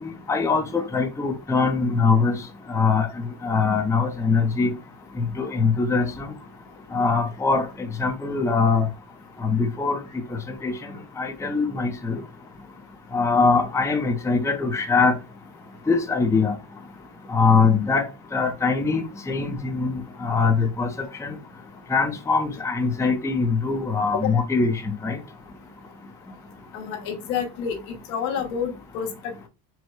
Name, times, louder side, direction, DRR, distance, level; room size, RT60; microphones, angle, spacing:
voice 1, 0.0-2.4 2.7-3.1 3.4-4.7 5.2-6.3 6.9-8.9 9.4-10.0 10.6-10.7 11.2-12.2 13.1-15.2 15.9-16.5 17.3-18.0 18.3-19.9 20.2-20.9 21.2-21.3 21.9-25.2, left 4 dB, 5° left, 0.6 m, -22 dB
voice 2, 26.7-29.5, left 7 dB, 80° left, 1.4 m, -29 dB
4.5 x 2.2 x 4.6 m
cardioid pair, 130°, 47 cm